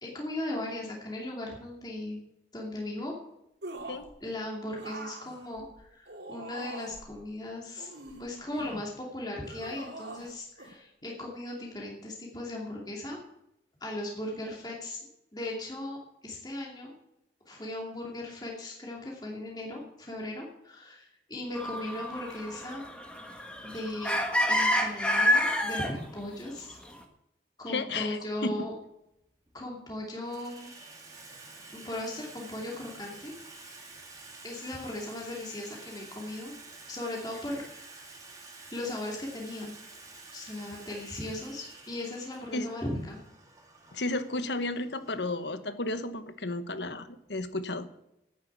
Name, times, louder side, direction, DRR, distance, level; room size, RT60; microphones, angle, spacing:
voice 1, 0.0-2.2 2.5-3.1 4.2-7.9 8.2-13.2 13.8-15.0 15.3-16.9 17.5-22.8 23.6-24.2 24.5-26.8 27.6-28.8 29.5-30.7 31.7-33.8 34.4-36.5 36.9-38.1 38.7-39.7 40.3-43.2, left 1 dB, 25° left, -2 dB, 2.6 m, -37 dB
sound 1, 3.6-4.1 4.8-7.1 7.8-8.9 9.4-10.3 10.6-10.7, right 2 dB, 75° right, 2.9 m, -43 dB
sound 2, 21.5-25.9 26.7-26.8, left 1 dB, 5° left, 1.5 m, -28 dB
voice 2, 27.7-28.5 42.5-42.7 43.9-47.9, left 2 dB, 80° left, 11 dB, 1.2 m, -33 dB
Water tap faucet / Sink (filling or washing), 28.2-28.3 29.2-29.7 30.0-47.6, right 3 dB, 20° right, 2.2 m, -50 dB
10.5 x 9.6 x 8.6 m, 0.82 s
head